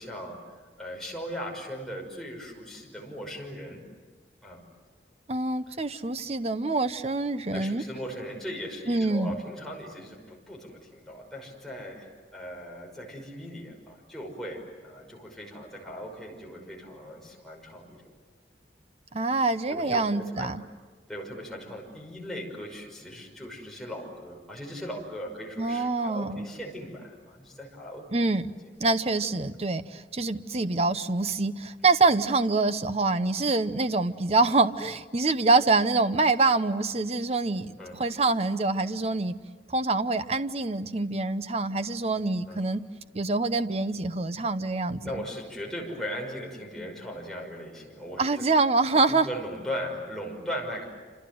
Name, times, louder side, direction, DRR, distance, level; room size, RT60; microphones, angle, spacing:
voice 1, 0.0-3.8 4.4-4.6 5.7-5.8 7.5-18.1 19.7-20.5 21.1-28.1 37.8-38.0 42.4-42.6 45.0-48.5 48.9-50.9, equal, ahead, -2 dB, 5.7 m, -38 dB
voice 2, 5.3-7.8 8.9-9.4 19.1-20.6 25.6-26.5 28.1-28.5 28.8-39.4 39.7-42.8 43.1-45.2 48.2-49.3, right 3 dB, 35° right, 11 dB, 0.9 m, -25 dB
28.0 x 27.5 x 7.8 m, 1.4 s
head